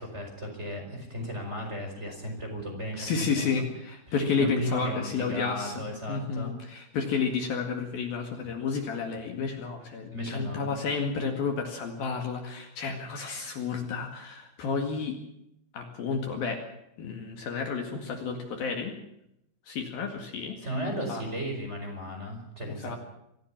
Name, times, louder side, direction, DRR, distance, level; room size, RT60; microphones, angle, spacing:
voice 1, 0.0-3.6 4.2-6.5 10.1-10.7 20.6-23.0, equal, 15° right, 1 dB, 4.9 m, -35 dB
voice 2, 3.0-5.8 6.1-15.2 15.7-16.6 17.0-18.9 19.7-20.6 21.1-21.2 22.8-23.0, left 5 dB, 60° left, 4 dB, 3.6 m, -31 dB
25.0 x 15.5 x 7.3 m, 0.81 s
omnidirectional pair, 5.2 m